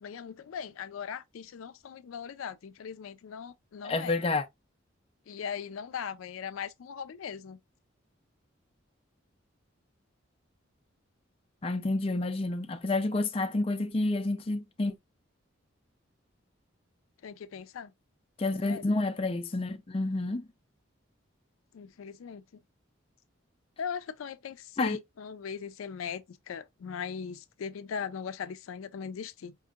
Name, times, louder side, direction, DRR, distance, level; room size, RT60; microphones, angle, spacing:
voice 1, 0.0-4.2 5.3-7.6 17.2-17.9 18.6-18.8 21.7-22.4 23.8-29.6, left 7 dB, 90° left, 0.4 m, -39 dB
voice 2, 3.8-4.4 11.6-14.9 18.4-20.5 24.8-25.0, left 2 dB, 30° left, 0.4 m, -29 dB
5.1 x 2.7 x 2.4 m
head